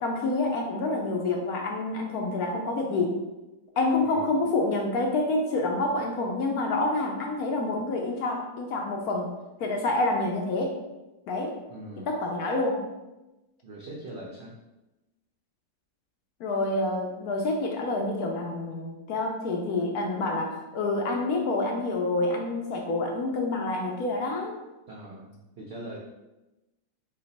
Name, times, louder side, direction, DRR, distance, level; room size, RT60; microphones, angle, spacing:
voice 1, 0.0-3.2 3.8-9.3 9.6-10.8 11.3-11.6 12.1-12.8 16.4-24.6, left 2 dB, 70° left, 1 dB, 1.0 m, -27 dB
voice 2, 4.0-4.4 11.7-12.1 13.6-14.5 24.9-26.0, right 1 dB, 80° right, -3 dB, 0.5 m, -41 dB
4.2 x 2.3 x 4.0 m, 1.0 s
omnidirectional pair, 1.8 m